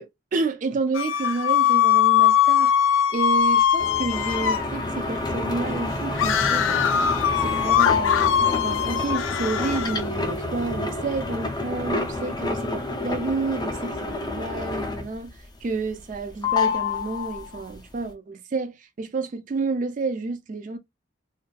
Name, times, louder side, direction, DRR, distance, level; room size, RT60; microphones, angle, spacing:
voice 1, 0.0-2.7 3.1-7.0 7.4-8.4 8.6-20.8, right 3 dB, 40° right, 0.3 m, -30 dB
sound 1, 0.9-4.7 6.2-10.0, left 9 dB, 85° left, 0.3 m, -21 dB
sound 2, 3.8-15.3 15.6-16.2 16.4-17.7, left 3 dB, 20° left, 0.4 m, -28 dB
2.6 x 2.3 x 2.2 m
head